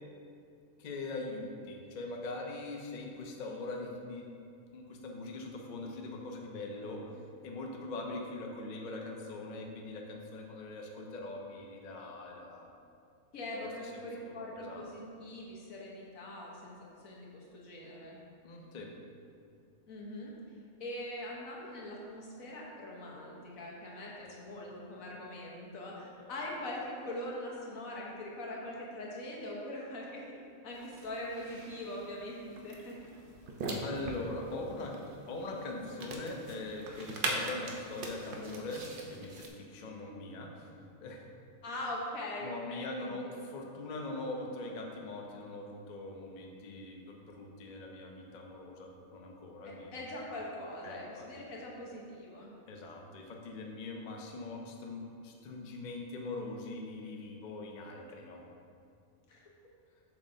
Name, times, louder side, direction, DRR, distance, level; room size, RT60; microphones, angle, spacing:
voice 1, 0.8-4.3 4.7-7.0 7.4-12.7 13.5-14.8 18.4-18.9 26.2-26.3 33.8-34.9 35.3-40.7 41.0-41.3 42.4-50.0 50.8-51.3 52.7-58.4, left 2 dB, 50° left, 1 dB, 0.6 m, -42 dB
voice 2, 13.3-18.2 19.9-20.3 20.8-33.0 41.6-43.3 49.6-52.5 59.3-59.4, left 1 dB, 80° left, -3 dB, 1.5 m, -42 dB
sound 1, 30.7-39.5, right 2 dB, 50° right, 0.7 m, -41 dB
7.1 x 6.1 x 2.7 m, 2.4 s
omnidirectional pair, 1.4 m